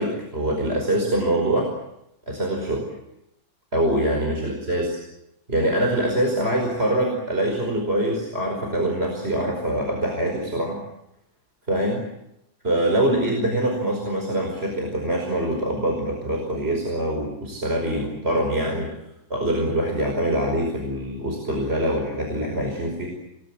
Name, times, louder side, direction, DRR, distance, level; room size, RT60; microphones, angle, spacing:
voice 1, 0.0-1.7 2.3-2.9 3.7-5.0 5.5-10.8 11.7-12.0 12.6-18.9 19.3-23.1, right 1 dB, 20° right, 1 dB, 5.3 m, -24 dB
29.5 x 21.0 x 8.8 m, 0.85 s
omnidirectional pair, 3.4 m